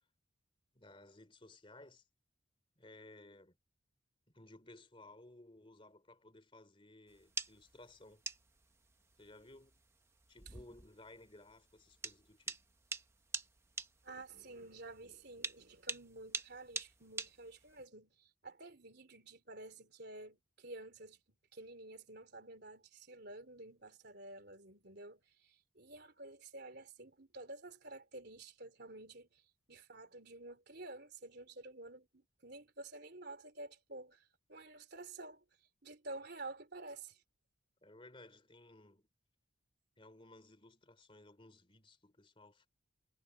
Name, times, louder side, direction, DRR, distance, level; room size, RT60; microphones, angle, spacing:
voice 1, 0.7-2.1 2.8-3.6 4.3-8.2 9.2-9.8 10.3-12.6 37.8-39.1 40.0-42.7, left 2 dB, 25° left, 3.2 m, -58 dB
sound 1, 7.1-17.8, right 4 dB, 15° right, 0.9 m, -46 dB
voice 2, 14.0-29.4 29.7-35.4 35.8-37.2, right 2 dB, 50° right, 3.8 m, -51 dB
head